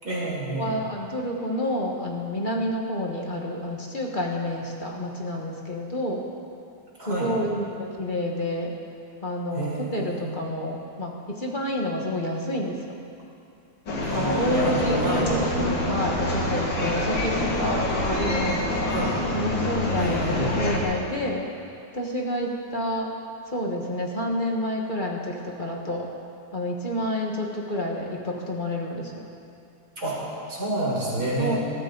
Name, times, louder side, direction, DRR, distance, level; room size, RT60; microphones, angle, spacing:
voice 1, 0.0-0.7 7.0-7.3 9.5-10.3 14.0-15.3 18.9-19.2 20.0-20.6 30.0-31.6, right 2 dB, 45° right, -6 dB, 4.6 m, -29 dB
voice 2, 0.5-6.2 7.0-8.7 9.2-13.0 14.1-18.9 19.3-21.4 21.9-23.1 23.5-26.1 26.5-29.3 31.4-31.6, left 1 dB, 25° left, -1 dB, 1.3 m, -29 dB
sound 1, 13.9-20.8, left 1 dB, 65° left, 2.6 m, -26 dB
21.0 x 13.5 x 3.9 m, 2.6 s
omnidirectional pair, 2.2 m